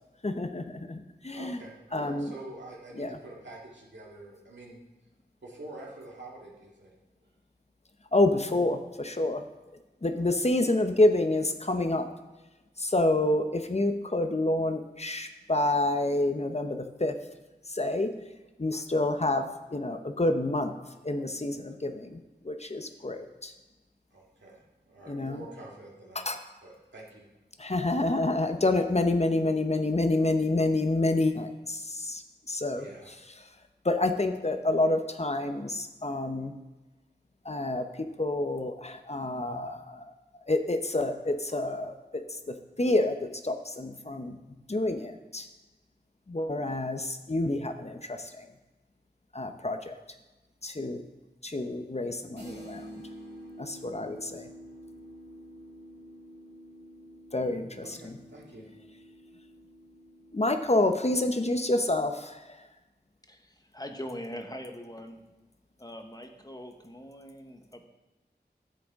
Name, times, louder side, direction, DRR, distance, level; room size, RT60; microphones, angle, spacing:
voice 1, 0.2-1.6 1.9-2.3 3.0-3.1 8.1-9.4 10.0-12.1 12.8-17.1 17.7-18.1 18.6-20.7 21.0-22.2 22.4-23.5 25.1-25.4 26.1-26.4 27.6-32.2 32.5-32.8 33.8-36.5 37.4-37.9 38.2-40.0 40.5-43.2 43.4-44.4 44.7-45.5 46.3-48.5 49.3-50.0 50.6-51.0 51.4-53.0 53.6-54.5 57.3-58.2 60.3-62.6, left 2 dB, 35° left, 6 dB, 0.7 m, -28 dB
voice 2, 1.3-4.8 5.4-7.0 10.1-10.3 24.1-26.2 26.6-27.3 32.7-33.1 57.8-58.7, right 2 dB, 80° right, -3 dB, 2.0 m, -46 dB
sound 1, 52.4-62.0, equal, 65° right, 1.9 m, -49 dB
voice 3, 63.3-65.2 65.8-67.8, equal, 20° left, 4 dB, 1.0 m, -42 dB
10.0 x 7.6 x 3.6 m, 1.1 s
wide cardioid pair, 40°, 18 cm